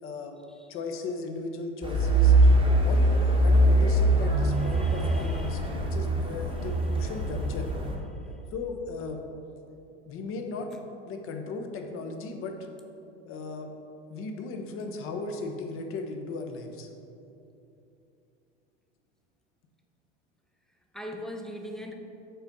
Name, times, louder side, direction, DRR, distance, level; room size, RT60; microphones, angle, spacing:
voice 1, 0.0-0.4 0.7-2.3 2.8-7.7 8.5-9.2 10.1-10.7 11.0-12.6 13.3-13.7 14.1-16.9, left 3 dB, 35° left, 4 dB, 0.8 m, -36 dB
sound 1, 1.8-7.9, right 1 dB, 15° right, 1.0 m, -22 dB
voice 2, 4.6-5.6 6.6-6.7 20.9-21.9, equal, ahead, 2 dB, 0.6 m, -41 dB
5.6 x 4.2 x 5.3 m, 2.8 s
hypercardioid pair, 80°, 35 cm